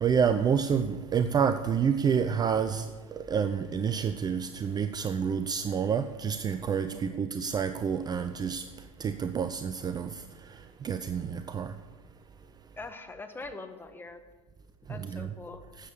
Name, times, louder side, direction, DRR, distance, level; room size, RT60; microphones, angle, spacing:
voice 1, 0.0-2.8 3.3-6.9 7.2-8.6 9.0-10.1 10.8-11.7 15.1-15.3, right 7 dB, 20° right, 0.6 m, -28 dB
voice 2, 6.9-7.4 12.8-14.2 14.9-15.6, left 3 dB, 10° left, 1.4 m, -43 dB
13.0 x 8.4 x 6.9 m
hypercardioid pair, 85°, 18 cm